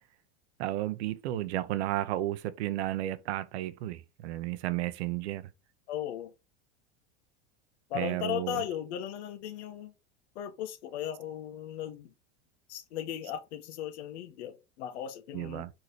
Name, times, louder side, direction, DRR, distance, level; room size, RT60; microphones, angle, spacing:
voice 1, 0.6-5.5 7.9-8.7 15.3-15.7, right 14 dB, 80° right, 0.9 m, -33 dB
voice 2, 5.9-6.3 7.9-9.9 10.3-12.1 12.7-15.7, left 11 dB, 80° left, 1.6 m, -37 dB
5.0 x 4.3 x 4.7 m
supercardioid pair, 130°, 33 cm